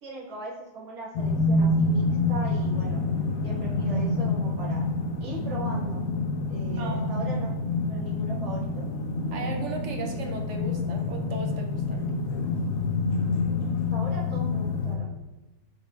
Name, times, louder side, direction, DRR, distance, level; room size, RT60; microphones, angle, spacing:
voice 1, 0.0-3.0 3.4-4.8 5.2-6.0 6.5-8.8 13.9-15.1, right 2 dB, 80° right, -5 dB, 1.8 m, -39 dB
sound 1, 1.1-15.0, left 3 dB, 70° left, 1.0 m, -27 dB
voice 2, 6.8-7.1 9.3-12.1, right 3 dB, 60° right, 2 dB, 0.8 m, -37 dB
6.1 x 3.9 x 2.2 m, 1.0 s
omnidirectional pair, 1.6 m